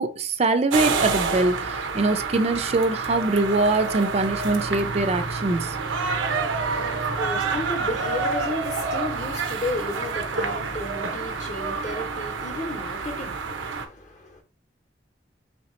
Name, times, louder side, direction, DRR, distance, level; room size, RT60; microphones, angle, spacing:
voice 1, 0.0-5.8, right 2 dB, 35° right, 0.4 m, -23 dB
sound 1, 0.7-13.8, right 4 dB, 85° right, 0.6 m, -28 dB
voice 2, 6.1-14.4, left 1 dB, 40° left, 0.8 m, -33 dB
3.2 x 2.9 x 4.2 m
head